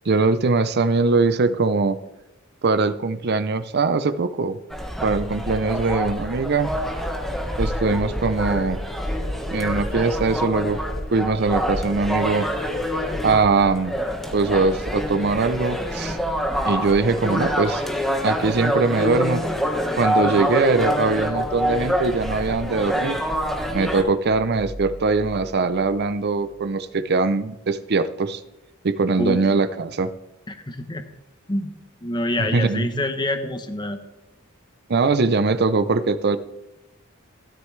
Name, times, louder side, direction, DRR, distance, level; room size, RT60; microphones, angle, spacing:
voice 1, 0.1-2.0 2.6-4.6 5.0-6.7 7.6-8.8 9.5-10.8 11.1-12.5 13.2-14.0 14.3-16.2 16.7-17.8 18.2-19.4 20.0-23.2 23.7-28.4 28.8-30.1 32.4-32.9 34.9-36.4, right 3 dB, 50° right, 12 dB, 0.5 m, -21 dB
sound 1, 4.7-24.0, equal, ahead, 1.4 m, -26 dB
sound 2, 24.5-26.9, right 1 dB, 50° left, 2.0 m, -41 dB
voice 2, 30.5-31.1 31.5-31.7 32.0-34.0, left 1 dB, 20° left, 8 dB, 0.9 m, -26 dB
13.0 x 13.0 x 3.2 m, 0.97 s
head